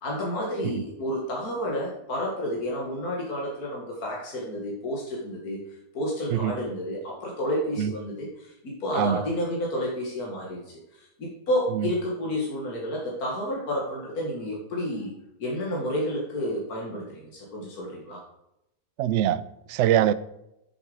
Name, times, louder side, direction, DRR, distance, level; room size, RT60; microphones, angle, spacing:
voice 1, 0.0-5.6 5.9-10.8 11.2-15.1 15.4-18.2, equal, 80° left, 2.2 m, -30 dB
voice 2, 19.0-19.4 19.7-20.1, right 11 dB, 65° right, 0.7 m, -23 dB
8.9 x 7.2 x 5.0 m
omnidirectional pair, 1.6 m